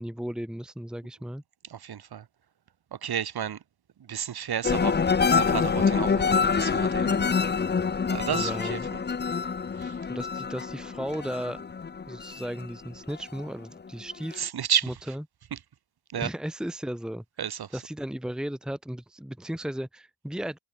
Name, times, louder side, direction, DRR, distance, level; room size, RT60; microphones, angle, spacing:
voice 1, 0.0-1.4 8.3-8.9 10.1-11.6 12.1-14.5 14.8-15.2 16.1-17.2 17.7-20.6, equal, ahead, 1.6 m, -35 dB
voice 2, 1.7-2.2 3.0-3.6 4.1-5.0 5.3-7.5 8.1-9.0 9.8-10.0 14.4-14.9 15.5-15.6 16.1-16.3 17.4-17.8, right 9 dB, 50° right, 5.1 m, -32 dB
sound 1, 4.6-13.4 13.9-14.4, left 5 dB, 20° left, 1.0 m, -26 dB
wide cardioid pair, 180°, 47 cm